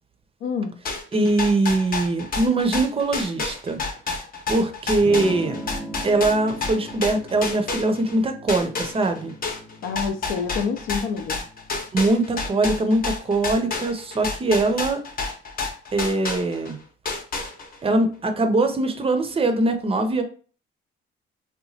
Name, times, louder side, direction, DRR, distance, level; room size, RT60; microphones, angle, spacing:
voice 1, 0.4-0.7 9.8-11.4, left 5 dB, 85° left, 6 dB, 0.5 m, -27 dB
sound 1, 0.9-8.2 8.5-16.7 17.1-17.9, left 4 dB, 45° left, 0.7 m, -29 dB
voice 2, 1.1-3.8 4.5-5.6 6.0-9.3 11.9-15.0 15.9-16.8 17.8-20.2, right 2 dB, 30° right, 7 dB, 0.5 m, -22 dB
Electric guitar / Strum, 5.0-14.8, right 1 dB, ahead, 0.7 m, -40 dB
2.9 x 2.2 x 2.7 m, 0.40 s
cardioid pair, 90°, 20 cm